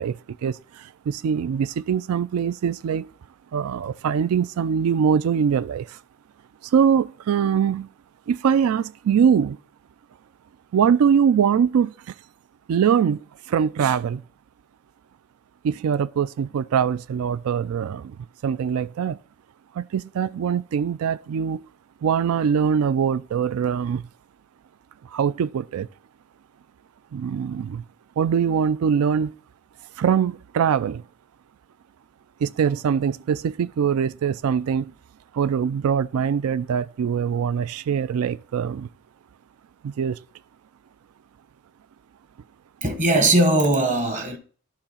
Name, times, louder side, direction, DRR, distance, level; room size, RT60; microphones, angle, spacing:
voice 1, 0.0-3.1 3.5-6.0 6.6-7.9 8.3-9.6 10.7-12.1 12.7-13.2 13.5-14.2 15.6-18.2 18.4-19.2 19.7-21.7 22.0-24.0 25.1-25.9 27.1-27.8 28.2-29.3 30.0-31.0 32.4-34.9 35.3-38.9 39.8-40.2, right 7 dB, 90° right, 0.3 m, -22 dB
voice 2, 42.8-44.4, right 1 dB, 35° right, 1.3 m, -19 dB
11.5 x 3.9 x 5.6 m
head